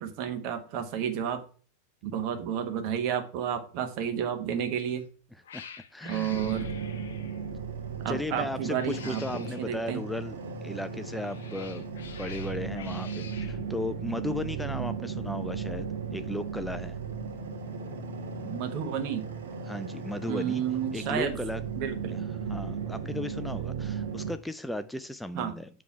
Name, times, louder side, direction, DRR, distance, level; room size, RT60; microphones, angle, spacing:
voice 1, 0.0-1.4 2.0-5.0 6.0-6.7 8.0-10.0 18.4-19.3 20.3-21.4 21.8-22.3 25.3-25.6, right 9 dB, 50° right, 1.2 m, -31 dB
Cat, 4.7-5.0 5.4-7.5 8.6-9.7 11.0-13.6, left 7 dB, 70° left, 0.7 m, -47 dB
voice 2, 5.9-6.4 8.1-11.8 12.2-17.0 19.7-20.6 20.9-21.6 22.1-22.2 22.5-25.7, left 1 dB, 5° left, 0.4 m, -35 dB
sound 1, 6.3-24.3, right 5 dB, 75° right, 1.1 m, -36 dB
7.0 x 3.2 x 5.6 m
figure-of-eight pair, 95°, 0 cm